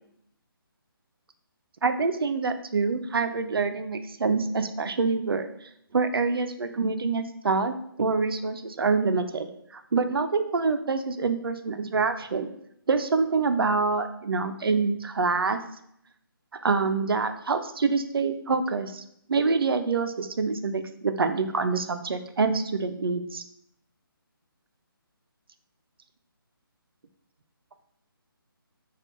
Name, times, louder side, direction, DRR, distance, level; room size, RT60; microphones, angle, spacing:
voice 1, 1.8-12.5 12.9-15.6 16.6-19.0 19.3-23.4, right 4 dB, 75° right, 9 dB, 0.4 m, -26 dB
4.2 x 2.3 x 2.9 m, 0.72 s
figure-of-eight pair, 155°, 12 cm